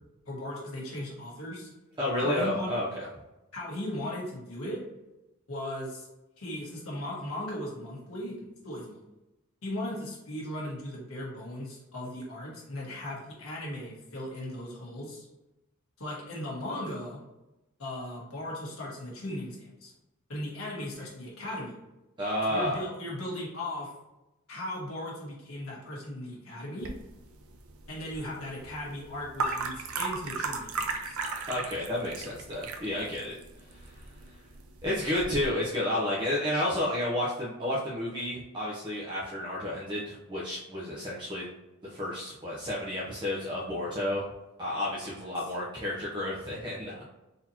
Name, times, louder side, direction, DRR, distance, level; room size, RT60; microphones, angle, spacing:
voice 1, 0.2-1.7 2.2-2.7 3.5-4.8 5.5-6.1 6.4-9.0 9.6-15.3 16.0-17.2 17.8-19.9 20.3-21.7 22.5-23.9 24.5-26.9 27.9-31.2, left 1 dB, 75° left, -5 dB, 1.3 m, -37 dB
voice 2, 2.0-3.1 22.2-22.8 31.5-33.4 33.7-34.0 34.8-41.5 41.8-44.2 44.6-47.0, left 1 dB, 20° right, -6 dB, 0.6 m, -31 dB
sound 1, 26.8-35.5, right 4 dB, 80° right, 0.5 m, -37 dB
4.0 x 2.8 x 2.8 m, 0.98 s
head